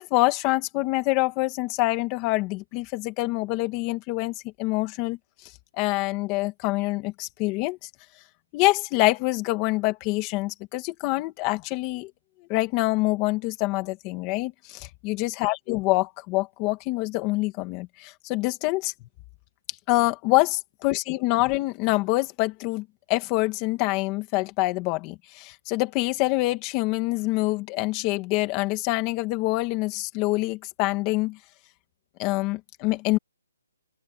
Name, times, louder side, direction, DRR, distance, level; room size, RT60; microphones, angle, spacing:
voice 1, 0.0-5.2 5.7-7.9 8.5-12.1 12.5-18.9 19.9-31.4 32.2-33.2, left 20 dB, 15° left, 2.2 m, -26 dB
open air
hypercardioid pair, 175°, 0 cm